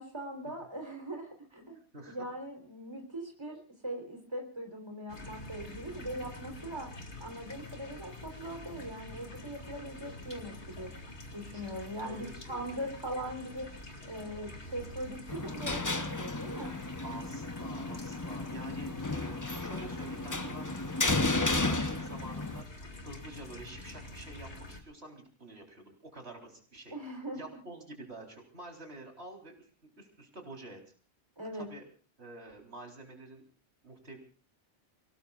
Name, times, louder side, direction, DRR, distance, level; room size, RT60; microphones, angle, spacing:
voice 1, 0.0-1.8 2.1-6.9 7.2-10.9 11.3-13.7 14.0-16.8 26.9-27.4 31.4-31.7, right 1 dB, 20° right, 2 dB, 3.8 m, -40 dB
voice 2, 1.9-2.3 11.5-11.7 12.0-12.8 17.0-22.6 23.0-27.0 27.3-29.7 30.0-30.8 31.5-31.8 32.2-33.4 33.8-34.2, right 2 dB, 65° right, 2 dB, 4.2 m, -48 dB
sound 1, 5.1-24.8, left 1 dB, 75° left, 2.9 m, -47 dB
sound 2, 15.3-22.6, left 2 dB, 20° left, 0.8 m, -33 dB
29.5 x 19.5 x 2.4 m, 0.38 s
omnidirectional pair, 1.2 m